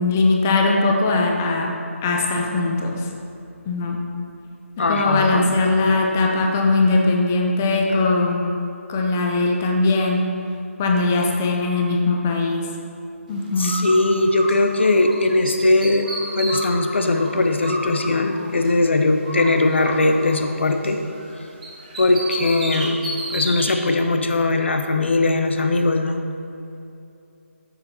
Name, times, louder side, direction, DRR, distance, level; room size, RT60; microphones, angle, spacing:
voice 1, 0.0-1.8 2.0-3.1 3.6-4.0 4.8-8.5 8.9-10.2 10.8-12.7 13.3-13.8, left 3 dB, 10° left, 1 dB, 0.3 m, -20 dB
voice 2, 4.8-5.4 13.6-16.1 16.3-21.0 22.0-23.0 23.3-26.2, left 2 dB, 55° left, 6 dB, 0.8 m, -19 dB
Bird, 13.6-15.1 15.4-18.9 19.2-21.3 21.6-23.7, right 1 dB, 30° right, 1.7 m, -32 dB
6.9 x 6.7 x 5.6 m, 2.7 s
figure-of-eight pair, 170°, 8 cm